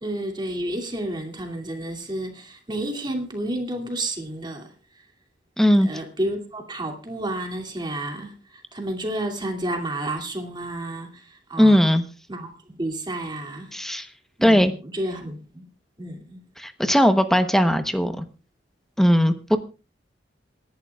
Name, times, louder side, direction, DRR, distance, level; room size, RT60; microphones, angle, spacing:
voice 1, 0.0-4.7 5.8-11.9 12.3-12.5 12.8-13.7 14.4-15.6 16.0-16.4, right 1 dB, 25° right, 2.5 m, -31 dB
voice 2, 5.6-5.9 11.6-12.0 13.7-14.1 14.4-14.7 16.6-18.2 19.0-19.6, equal, ahead, 0.9 m, -18 dB
27.0 x 11.0 x 2.4 m
head